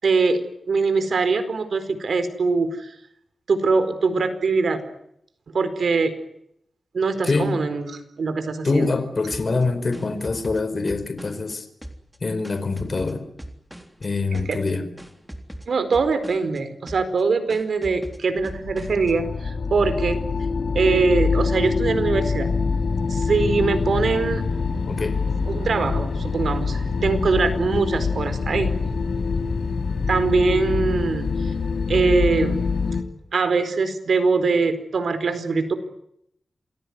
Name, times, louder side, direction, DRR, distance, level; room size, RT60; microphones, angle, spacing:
voice 1, 0.0-2.9 3.5-4.8 5.5-6.1 6.9-9.0 14.3-14.6 15.7-20.2 20.7-22.5 23.1-24.4 25.5-28.7 30.1-31.5 31.9-32.7 33.3-35.7, right 4 dB, 70° right, 11 dB, 4.5 m, -22 dB
voice 2, 7.2-7.6 8.6-11.7 12.2-13.2 14.0-14.9 24.9-25.2, left 3 dB, 45° left, 10 dB, 4.7 m, -24 dB
sound 1, 9.3-11.5 11.8-14.1 14.3-14.7 15.0-16.6 16.9-17.2 17.5-19.1, right 1 dB, 5° right, 3.6 m, -40 dB
sound 2, 18.4-33.0, left 4 dB, 85° left, 3.4 m, -25 dB
28.0 x 20.0 x 9.7 m, 0.76 s
wide cardioid pair, 115°, 0 cm